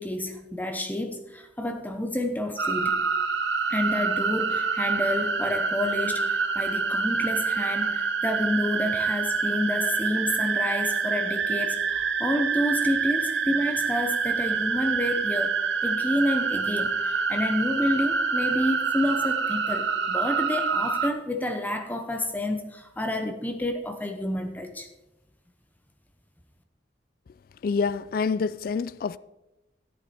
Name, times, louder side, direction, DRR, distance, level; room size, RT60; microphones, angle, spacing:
voice 1, 0.0-3.0 3.7-24.9, left 1 dB, 10° left, 0.8 m, -29 dB
sound 1, 2.6-21.1, right 5 dB, 90° right, 0.8 m, -26 dB
voice 2, 27.6-29.2, left 5 dB, 55° left, 0.3 m, -27 dB
13.5 x 8.5 x 4.3 m
head